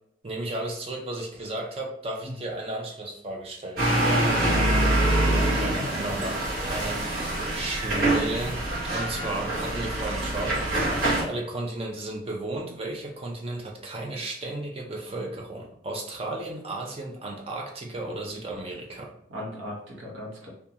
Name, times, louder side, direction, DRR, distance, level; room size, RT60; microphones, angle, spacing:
voice 1, 0.2-3.9 5.3-19.1, right 2 dB, 30° right, 0 dB, 0.5 m, -34 dB
sound 1, 3.8-11.2, right 1 dB, 50° right, 1.0 m, -25 dB
voice 2, 3.9-4.6 19.3-20.5, left 1 dB, 75° right, -2 dB, 0.8 m, -34 dB
2.5 x 2.2 x 2.7 m, 0.69 s
head